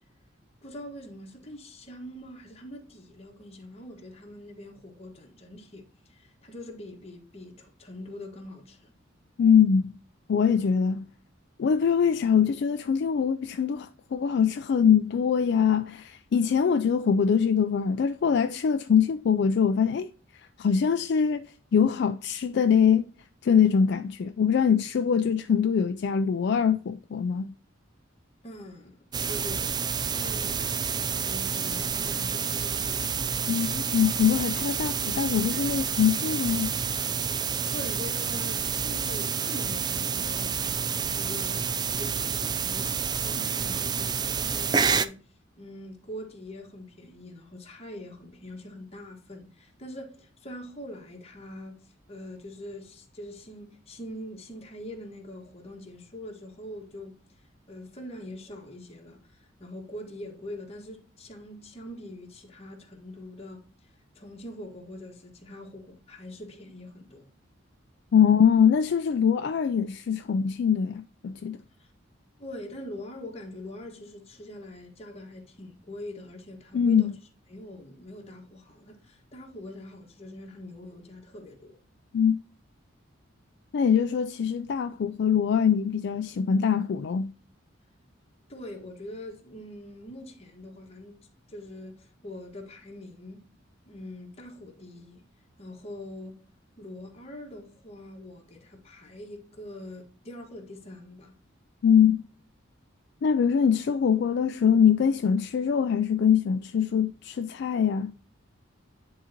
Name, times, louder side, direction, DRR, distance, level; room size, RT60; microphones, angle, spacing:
voice 1, 0.6-8.9 28.4-29.8 30.1-33.1 37.2-41.7 41.9-45.3 45.6-57.2 57.7-63.6 64.1-67.3 71.8-71.9 72.4-77.1 77.5-81.8 88.5-93.4 93.9-95.2 95.6-96.4 96.8-101.4, left 1 dB, 30° left, 1.5 m, -43 dB
voice 2, 9.4-9.9 10.3-11.0 11.6-20.1 20.6-21.5 21.7-23.1 23.4-27.5 33.5-36.7 68.1-71.6 76.7-77.1 82.1-82.4 83.7-87.3 101.8-102.2 103.2-108.2, left 7 dB, 60° left, 0.3 m, -23 dB
sound 1, 29.1-45.1, right 6 dB, 20° right, 0.3 m, -29 dB
10.0 x 3.9 x 2.8 m
head